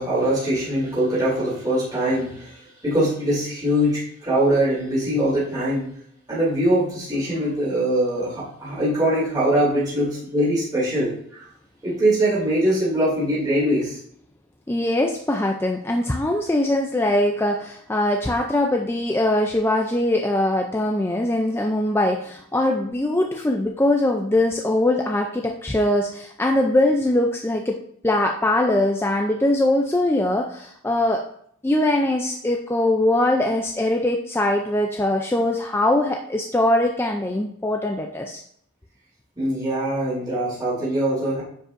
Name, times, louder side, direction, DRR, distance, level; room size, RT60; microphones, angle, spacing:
voice 1, 0.0-5.9 6.3-11.5 11.8-14.0 39.4-41.4, right 1 dB, 20° right, -9 dB, 3.1 m, -22 dB
voice 2, 14.7-27.8 28.0-31.2 31.6-38.4, left 1 dB, 10° left, 2 dB, 0.4 m, -22 dB
9.6 x 5.1 x 2.6 m, 0.66 s
head